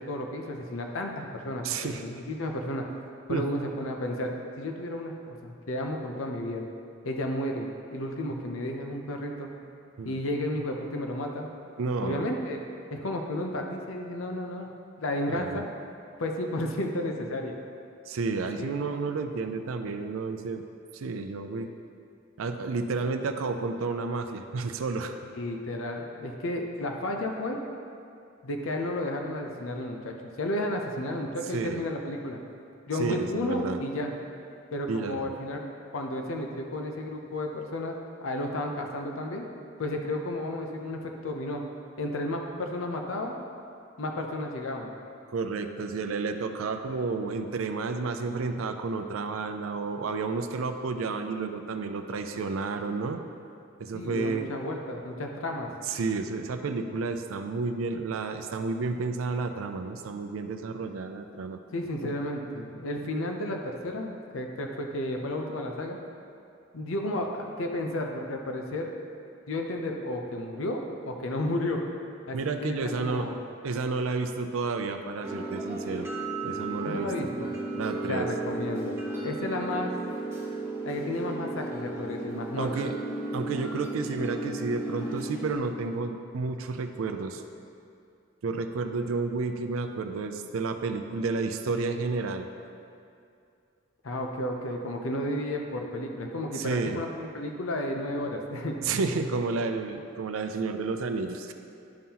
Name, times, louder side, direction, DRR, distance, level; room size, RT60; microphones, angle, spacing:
voice 1, 0.0-2.8 3.3-6.6 7.0-9.5 10.0-11.5 12.0-12.6 12.9-14.7 15.0-15.6 16.2-17.5 18.6-18.7 25.3-27.6 28.4-32.4 32.9-34.1 34.7-35.6 35.9-38.0 38.2-39.4 39.8-41.6 42.0-43.3 44.0-44.9 53.9-55.7 61.7-66.0 66.7-68.9 69.5-71.8 72.3-73.4 76.9-77.5 78.1-79.0 79.2-79.9 80.8-82.7 94.0-98.8, left 1 dB, 80° left, 2 dB, 0.6 m, -32 dB
voice 2, 1.6-2.0 3.3-3.4 10.0-10.2 11.8-12.3 15.3-15.6 18.1-20.6 20.9-21.7 22.4-25.2 31.5-31.8 33.0-33.8 34.9-35.3 45.3-53.2 53.8-54.5 55.8-61.6 72.3-73.3 73.6-76.1 76.4-77.1 77.8-78.3 82.6-83.0 83.3-87.4 88.4-92.5 96.5-97.0 98.8-101.5, right 4 dB, 85° right, 7 dB, 0.4 m, -31 dB
sound 1, 75.2-85.5, right 2 dB, 15° right, 1.0 m, -34 dB
10.5 x 5.5 x 2.9 m, 2.5 s
head